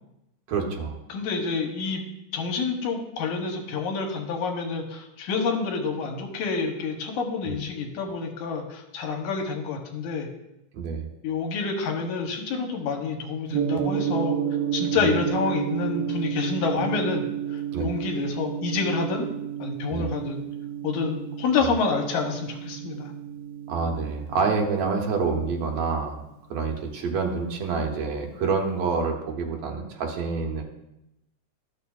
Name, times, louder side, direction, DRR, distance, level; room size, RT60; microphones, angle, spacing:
voice 1, 0.5-1.0 7.5-7.6 10.7-11.1 15.0-15.1 17.7-17.9 19.9-20.1 23.7-26.2 26.5-30.6, right 4 dB, 65° right, 1 dB, 2.0 m, -27 dB
voice 2, 1.1-2.0 2.3-10.3 11.2-14.4 14.7-17.2 17.5-19.3 19.6-20.4 20.8-23.1, left 4 dB, 80° left, 3 dB, 2.3 m, -28 dB
Gong, 13.5-27.7, right 9 dB, 80° right, 2.3 m, -32 dB
12.5 x 6.6 x 2.3 m, 0.87 s
omnidirectional pair, 3.5 m